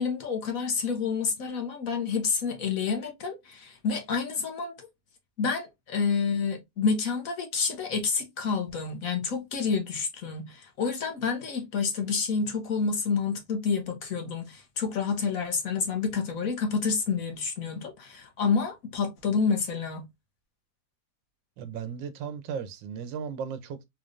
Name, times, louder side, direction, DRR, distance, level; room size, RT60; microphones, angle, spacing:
voice 1, 0.0-4.7 5.4-20.0, left 5 dB, 55° left, 1.2 m, -29 dB
voice 2, 21.6-23.8, right 7 dB, 85° right, 1.4 m, -36 dB
3.8 x 3.2 x 2.4 m
omnidirectional pair, 1.9 m